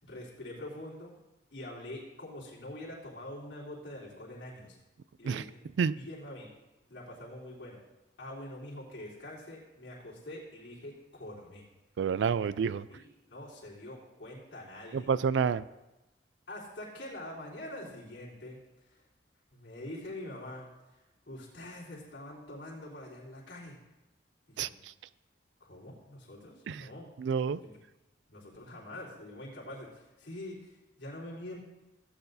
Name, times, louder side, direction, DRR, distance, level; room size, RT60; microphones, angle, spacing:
voice 1, 0.0-1.1 1.5-4.8 5.2-5.6 5.9-6.5 6.9-7.8 8.2-11.6 12.9-15.1 16.5-18.6 19.5-20.7 21.3-23.8 24.6-24.7 25.6-27.1 27.6-27.7 28.3-31.6, left 1 dB, 70° left, -7 dB, 3.7 m, -45 dB
voice 2, 12.0-12.9 14.9-15.6 24.6-24.7 26.7-26.9 27.2-27.6, right 6 dB, 80° right, 17 dB, 0.3 m, -29 dB
16.0 x 8.9 x 2.7 m, 1.0 s
head